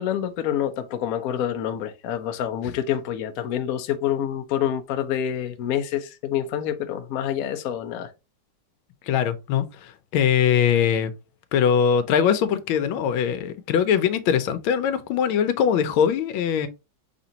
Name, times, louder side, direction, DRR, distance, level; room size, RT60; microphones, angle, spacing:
voice 1, 0.0-8.1, left 10 dB, 70° left, 0.8 m, -27 dB
voice 2, 9.1-11.1 11.5-16.7, left 8 dB, 90° left, 1.5 m, -22 dB
5.1 x 3.6 x 2.8 m
omnidirectional pair, 2.1 m